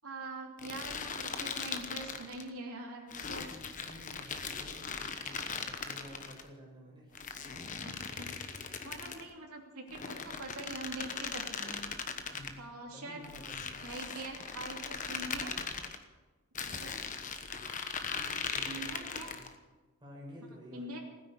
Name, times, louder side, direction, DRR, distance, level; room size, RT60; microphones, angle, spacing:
voice 1, 0.0-3.4 7.8-8.4 8.8-11.8 12.6-13.2 13.8-15.5 16.7-16.9 18.7-19.4 20.7-21.0, right 2 dB, 80° right, 0 dB, 2.8 m, -44 dB
sound 1, 0.6-2.5 3.1-6.4 7.2-9.3 9.9-12.6 13.2-16.0 16.6-19.5, left 5 dB, 35° left, 1.1 m, -39 dB
voice 2, 3.4-7.1 12.3-12.7 12.9-13.8 18.1-19.5 20.0-21.0, equal, 20° right, -3 dB, 5.8 m, -51 dB
16.5 x 10.0 x 8.3 m, 1.3 s
head